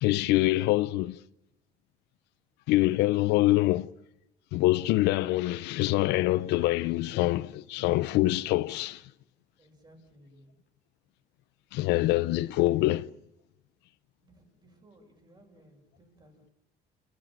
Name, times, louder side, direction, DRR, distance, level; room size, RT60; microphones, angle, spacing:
voice 1, 0.0-1.2 2.7-3.9 4.5-9.0 11.7-13.1, left 17 dB, 90° left, 0.7 m, -25 dB
voice 2, 9.6-10.5 11.9-12.4 14.2-16.5, right 1 dB, 25° right, 7.5 m, -59 dB
28.5 x 14.0 x 8.9 m
cardioid pair, 110°, 17 cm